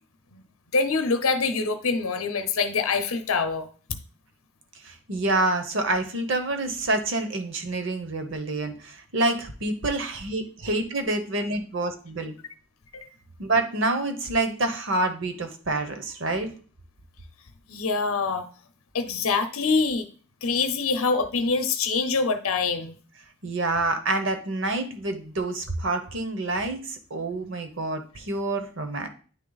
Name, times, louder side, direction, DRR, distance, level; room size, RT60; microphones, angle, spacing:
voice 1, 0.7-4.0 12.9-13.1 17.7-18.5 18.9-20.1 20.4-23.0, left 4 dB, 80° left, 9 dB, 0.7 m, -25 dB
voice 2, 4.8-12.3 13.4-16.5 23.4-29.1, right 2 dB, 60° right, 7 dB, 0.9 m, -27 dB
9.2 x 3.3 x 4.0 m, 0.40 s
head